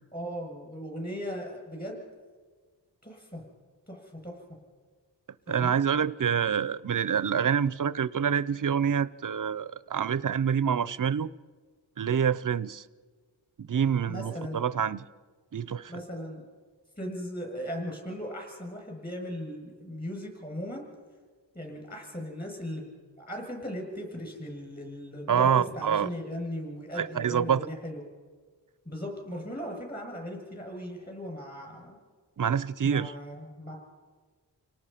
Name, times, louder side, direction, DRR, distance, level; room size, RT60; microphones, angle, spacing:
voice 1, 0.1-2.0 3.0-3.4 3.9-4.3 5.5-5.8 14.1-14.6 15.9-16.4 17.0-20.8 21.5-28.0 28.9-32.0 32.8-33.7, equal, 20° left, 7.4 m, -38 dB
voice 2, 5.5-11.3 12.0-12.8 13.6-15.1 15.5-15.9 25.3-26.1 27.0-27.7 32.4-33.1, right 7 dB, 45° right, 0.6 m, -26 dB
29.5 x 18.5 x 5.8 m
wide cardioid pair, 95°, 43 cm